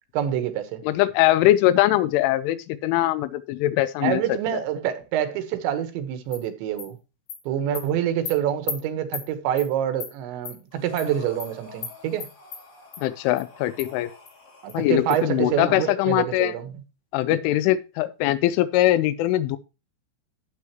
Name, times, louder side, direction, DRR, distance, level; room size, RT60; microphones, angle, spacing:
voice 1, 0.1-0.8 4.0-7.0 7.5-12.3 14.6-16.7, right 10 dB, 75° right, 3.4 m, -26 dB
voice 2, 0.8-4.2 13.0-14.1 14.7-16.5 17.1-19.6, left 15 dB, 90° left, 3.1 m, -21 dB
Animal, 6.3-6.4 6.8-6.9 7.3-7.4 7.7-7.8 8.3-8.4 8.7-8.8 9.1-9.3 9.6-9.7 10.0-10.1 10.4-10.6 11.0-11.1 11.4-11.5 11.8-11.9 12.2-12.6 12.9-13.0 13.4-13.5 13.8-13.9 14.3-14.4 14.7-14.8 15.1-15.2, left 7 dB, 60° left, 3.9 m, -34 dB
Breathing, 10.7-15.6, left 4 dB, 35° left, 3.2 m, -48 dB
12.0 x 8.4 x 3.0 m
omnidirectional pair, 5.5 m